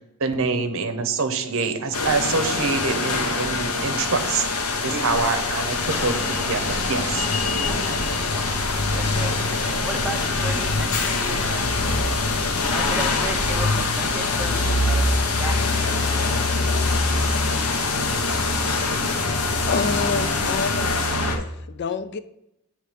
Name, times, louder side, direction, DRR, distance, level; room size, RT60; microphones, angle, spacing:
voice 1, 0.2-4.5 4.8-7.3, right 4 dB, 60° right, 8 dB, 0.7 m, -25 dB
sound 1, 1.9-21.4, left 3 dB, 70° left, 0.9 m, -23 dB
voice 2, 4.9-5.4 5.9-6.1 7.7-8.0 8.3-8.6 8.9-11.7 12.6-15.6 15.9-16.5, right 2 dB, 5° right, 4 dB, 0.6 m, -35 dB
voice 3, 19.7-22.2, left 4 dB, 50° left, 12 dB, 0.4 m, -28 dB
8.0 x 3.3 x 4.9 m, 0.80 s
head